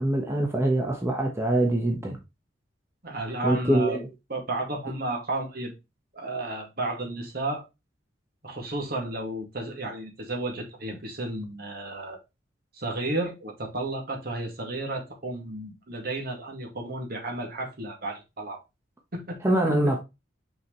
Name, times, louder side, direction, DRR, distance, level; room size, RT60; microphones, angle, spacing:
voice 1, 0.0-2.2 3.4-4.1 19.4-20.0, right 1 dB, 15° right, 1.2 m, -24 dB
voice 2, 3.0-4.0 4.3-5.7 6.1-7.6 8.4-12.2 12.7-18.6 19.1-19.4, right 2 dB, 55° right, 2.2 m, -32 dB
6.0 x 5.0 x 3.2 m
head